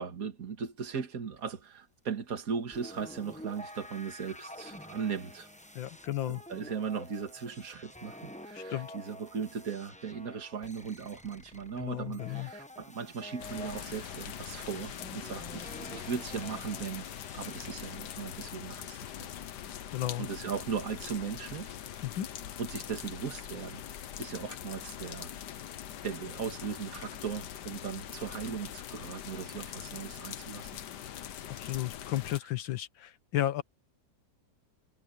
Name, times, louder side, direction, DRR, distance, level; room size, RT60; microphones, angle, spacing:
voice 1, 0.0-5.5 6.3-17.1 17.3-19.3 20.2-21.7 22.6-23.8 24.2-25.3 26.0-30.7, right 6 dB, 50° right, 2.3 m, -38 dB
sound 1, 2.7-18.4, left 1 dB, 5° left, 0.6 m, -48 dB
voice 2, 5.7-6.4 8.5-8.9 11.8-12.5 19.9-20.3 22.0-22.3 31.5-33.6, left 13 dB, 90° left, 1.8 m, -33 dB
sound 2, 13.4-32.4, left 10 dB, 65° left, 1.4 m, -43 dB
omnidirectional pair, 2.0 m